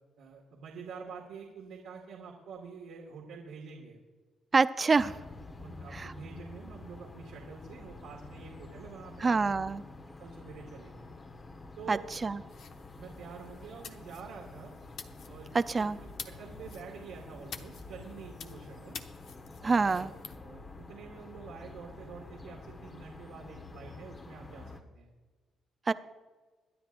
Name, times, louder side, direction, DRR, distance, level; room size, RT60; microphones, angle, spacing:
voice 1, 0.2-4.0 5.6-9.5 10.2-11.0 11.8-12.1 13.0-14.7 15.2-19.0 19.6-25.1, right 5 dB, 90° right, -2 dB, 2.0 m, -47 dB
voice 2, 4.5-5.1 5.9-6.1 9.2-9.8 11.9-12.4 15.5-16.0 19.6-20.1 25.9-26.0, right 4 dB, 30° right, 13 dB, 0.5 m, -26 dB
sound 1, 5.0-24.8, left 3 dB, 30° left, 1.3 m, -48 dB
sound 2, 12.5-20.4, left 6 dB, 65° left, 1.0 m, -49 dB
23.5 x 10.5 x 2.6 m, 1.3 s
cardioid pair, 90°, 0 cm